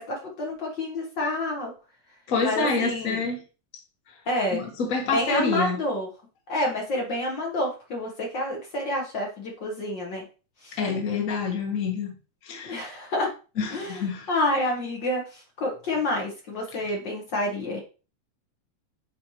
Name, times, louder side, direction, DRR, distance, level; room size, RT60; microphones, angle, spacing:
voice 1, 0.0-1.7 2.4-3.2 4.3-4.6 5.1-6.1 6.5-10.2 10.6-10.8 12.7-13.3 13.7-17.8, left 1 dB, 65° left, 1.1 m, -28 dB
voice 2, 2.3-3.4 4.5-5.8 10.8-12.1 12.4-13.0 13.6-14.3, left 4 dB, 85° left, 0.7 m, -27 dB
9.6 x 4.3 x 3.1 m
omnidirectional pair, 4.0 m